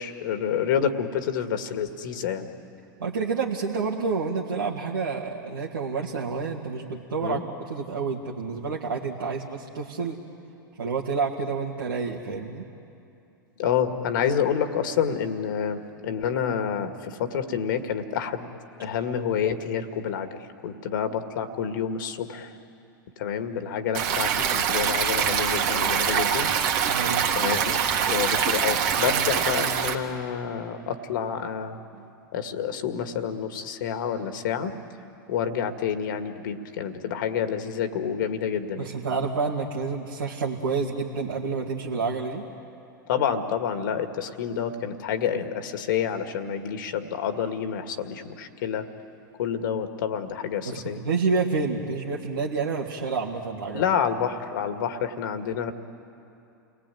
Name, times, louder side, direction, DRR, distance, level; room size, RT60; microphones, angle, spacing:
voice 1, 0.0-2.5 7.2-7.4 13.6-18.5 18.8-20.3 20.6-22.6 23.2-26.5 27.3-31.8 32.3-34.7 35.3-38.9 43.1-48.9 49.4-51.0 53.7-55.7, left 8 dB, 65° left, 7 dB, 2.0 m, -28 dB
voice 2, 3.0-7.4 7.7-10.2 10.8-12.6 26.9-27.3 38.8-42.4 50.6-53.8, right 4 dB, 85° right, -4 dB, 2.3 m, -29 dB
Stream, 23.9-29.9, right 8 dB, 55° right, 2.2 m, -24 dB
29.5 x 20.0 x 9.3 m, 2.8 s
hypercardioid pair, 100°, 11 cm